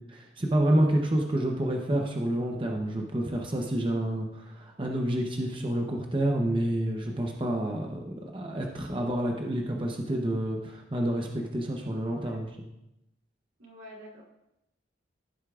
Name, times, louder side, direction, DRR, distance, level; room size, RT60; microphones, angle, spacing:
voice 1, 0.1-12.7, right 1 dB, 25° right, 0 dB, 0.8 m, -29 dB
voice 2, 12.1-12.4 13.6-14.2, equal, 85° right, -4 dB, 3.3 m, -47 dB
15.0 x 8.1 x 2.4 m, 0.88 s
head